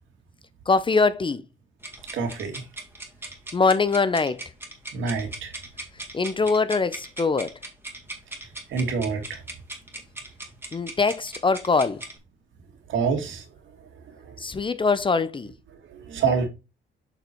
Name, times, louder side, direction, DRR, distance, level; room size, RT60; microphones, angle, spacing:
voice 1, 0.7-1.4 3.5-4.4 6.1-7.5 10.7-12.0 14.4-15.5, left 4 dB, 25° left, 0.6 m, -22 dB
sound 1, 1.8-12.2, right 1 dB, 10° right, 2.0 m, -39 dB
voice 2, 2.1-2.6 4.9-5.5 8.7-9.4 12.9-13.4 15.9-16.5, right 5 dB, 75° right, 2.1 m, -26 dB
7.0 x 4.1 x 4.5 m
cardioid pair, 90°, 20 cm